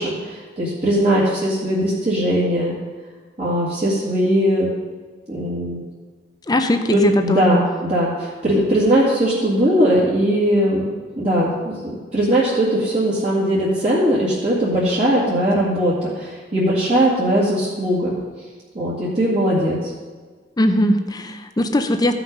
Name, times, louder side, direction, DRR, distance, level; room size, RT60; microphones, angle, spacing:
voice 1, 0.0-2.8 3.4-4.7 5.3-5.8 6.9-11.5 11.8-18.2 18.7-19.9, equal, 40° right, -8 dB, 2.0 m, -19 dB
voice 2, 6.5-7.6 20.6-22.1, left 1 dB, 20° left, 7 dB, 0.6 m, -19 dB
14.5 x 6.0 x 5.3 m, 1.4 s
head